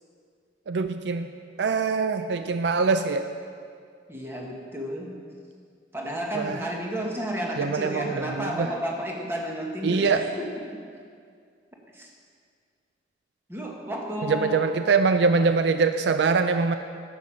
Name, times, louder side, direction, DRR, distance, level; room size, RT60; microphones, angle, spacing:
voice 1, 0.7-1.3 1.6-3.3 6.3-6.6 7.6-8.7 9.8-10.2 14.2-16.8, right 4 dB, 70° right, 9 dB, 0.4 m, -23 dB
voice 2, 4.1-5.1 5.9-10.8 11.9-12.1 13.5-14.6, equal, 15° right, -1 dB, 1.3 m, -32 dB
10.5 x 7.2 x 6.3 m, 2.2 s
head